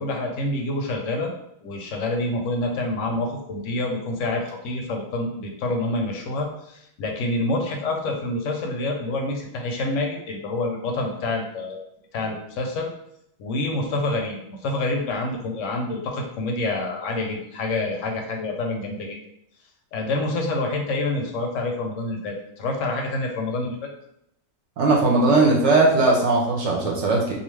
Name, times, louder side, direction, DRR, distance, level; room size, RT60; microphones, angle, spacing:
voice 1, 0.0-1.3 1.6-11.8 12.1-12.9 13.4-19.2 19.9-23.9, left 2 dB, 70° left, 2 dB, 0.9 m, -27 dB
voice 2, 24.8-27.3, right 3 dB, 65° right, -2 dB, 0.8 m, -19 dB
2.5 x 2.3 x 3.1 m, 0.77 s
omnidirectional pair, 1.5 m